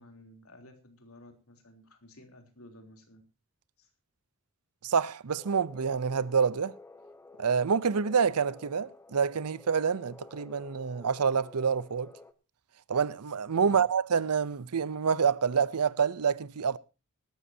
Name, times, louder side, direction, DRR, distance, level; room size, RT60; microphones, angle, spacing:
voice 1, 0.0-3.2 3.8-3.9 13.6-13.9, left 1 dB, 65° left, 3.4 m, -54 dB
voice 2, 4.8-6.7 7.4-12.1 12.9-16.8, right 6 dB, 90° right, 0.7 m, -27 dB
sound 1, 5.4-12.3, left 2 dB, 10° left, 1.1 m, -52 dB
19.5 x 12.5 x 2.8 m
head